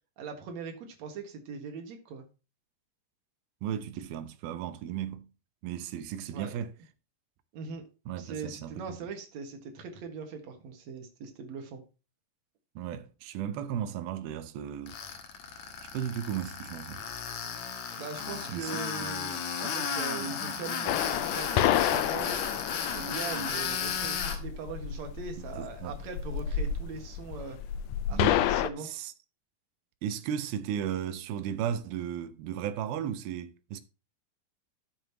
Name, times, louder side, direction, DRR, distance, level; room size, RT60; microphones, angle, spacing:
voice 1, 0.2-2.3 6.3-6.5 7.5-7.9 8.2-11.8 18.0-22.4 22.9-27.6 28.1-28.9, right 5 dB, 55° right, 2.5 m, -40 dB
voice 2, 3.6-5.3 5.6-6.7 8.1-9.0 12.8-15.0 15.9-17.0 18.5-18.8 25.4-26.0 28.1-28.4 28.8-29.1 30.0-33.8, right 9 dB, 90° right, 2.7 m, -35 dB
Tools, 14.9-24.4, left 6 dB, 60° left, 2.3 m, -34 dB
sound 1, 20.9-28.7, left 11 dB, 85° left, 1.8 m, -30 dB
12.5 x 7.5 x 2.9 m
omnidirectional pair, 4.2 m